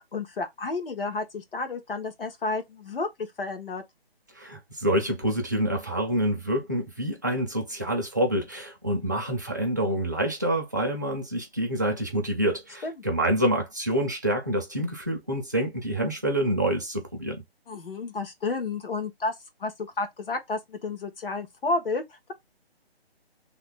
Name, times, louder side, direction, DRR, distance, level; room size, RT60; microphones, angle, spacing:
voice 1, 0.1-3.8 12.8-13.0 17.7-19.3 19.6-22.3, left 3 dB, 60° left, 1.3 m, -31 dB
voice 2, 4.3-17.4, right 1 dB, 20° right, 0.5 m, -27 dB
3.2 x 2.1 x 3.8 m
hypercardioid pair, 165°, 32 cm